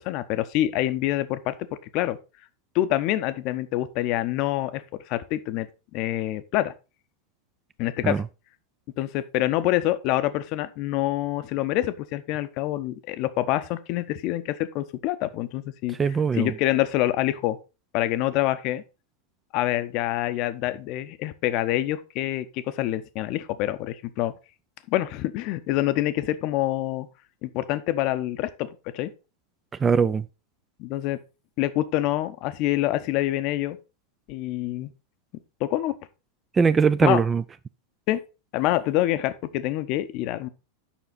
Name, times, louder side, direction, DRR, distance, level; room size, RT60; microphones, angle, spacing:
voice 1, 0.0-1.5 1.9-2.2 2.7-5.7 5.9-6.7 7.8-8.2 9.0-16.0 16.3-17.6 17.9-18.8 19.5-24.3 24.9-27.1 27.4-28.7 28.9-29.1 30.8-31.2 31.6-33.8 34.3-34.9 35.6-35.9 37.0-37.2 38.1-38.2 38.5-40.5, left 14 dB, 40° left, 0.6 m, -26 dB
voice 2, 16.0-16.5 29.8-30.2 36.5-37.4, right 5 dB, 15° right, 0.3 m, -21 dB
7.2 x 5.8 x 4.0 m
figure-of-eight pair, 90°, 0 cm